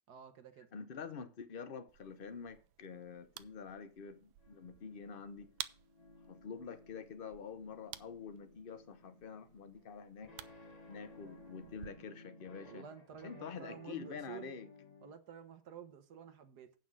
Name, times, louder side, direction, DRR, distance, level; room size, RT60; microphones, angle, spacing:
voice 1, 0.1-0.7 12.6-14.6 15.0-16.8, right 7 dB, 55° right, 1.4 m, -51 dB
voice 2, 0.7-5.5 6.3-10.3 10.9-12.9 13.2-14.7, left 6 dB, 75° left, 0.5 m, -47 dB
sound 1, 1.9-11.9, right 13 dB, 75° right, 1.3 m, -53 dB
sound 2, 4.4-15.1, left 3 dB, 20° left, 1.2 m, -58 dB
8.8 x 5.9 x 6.1 m
omnidirectional pair, 2.3 m